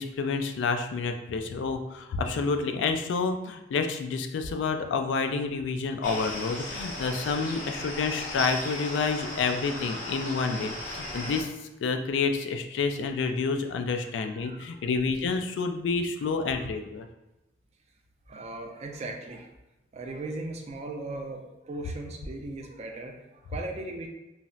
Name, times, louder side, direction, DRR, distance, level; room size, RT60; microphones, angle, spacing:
voice 1, 0.0-11.5 11.8-17.1, left 4 dB, 90° left, 6 dB, 0.3 m, -29 dB
sound 1, 6.0-11.4, left 1 dB, 45° left, 0.7 m, -36 dB
voice 2, 7.0-7.3 7.7-8.0 10.4-10.6 14.1-14.7 16.4-16.7 18.3-19.5 19.9-24.1, right 2 dB, 35° right, 3 dB, 0.4 m, -39 dB
4.0 x 2.0 x 2.4 m, 0.98 s
head